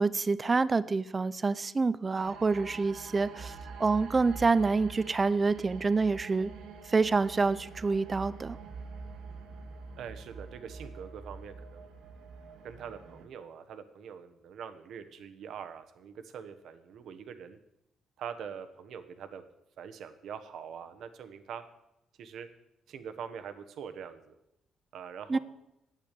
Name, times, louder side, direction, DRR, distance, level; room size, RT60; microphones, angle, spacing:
voice 1, 0.0-3.5 3.8-6.5 6.9-8.6 25.3-25.4, right 4 dB, 30° right, 17 dB, 0.5 m, -27 dB
sound 1, 2.2-13.3, right 4 dB, 90° right, 1.7 m, -46 dB
voice 2, 10.0-11.9 12.6-17.6 18.2-19.5 19.8-21.6 22.2-22.5 22.9-24.3 24.9-25.4, right 7 dB, 75° right, 9 dB, 1.1 m, -43 dB
9.2 x 8.4 x 8.3 m, 0.85 s
cardioid pair, 90°, 0 cm